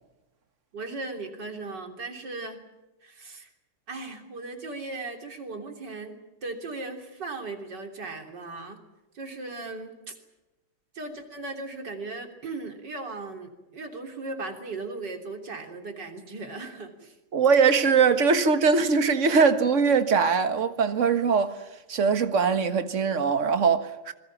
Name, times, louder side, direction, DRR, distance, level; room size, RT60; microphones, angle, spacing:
voice 1, 0.7-2.6 3.0-3.5 3.9-8.8 9.1-10.2 10.9-17.2, right 3 dB, 55° right, 3.9 m, -37 dB
voice 2, 17.3-21.6 21.9-24.1, right 5 dB, 40° right, 1.6 m, -21 dB
27.0 x 22.0 x 7.3 m
omnidirectional pair, 2.2 m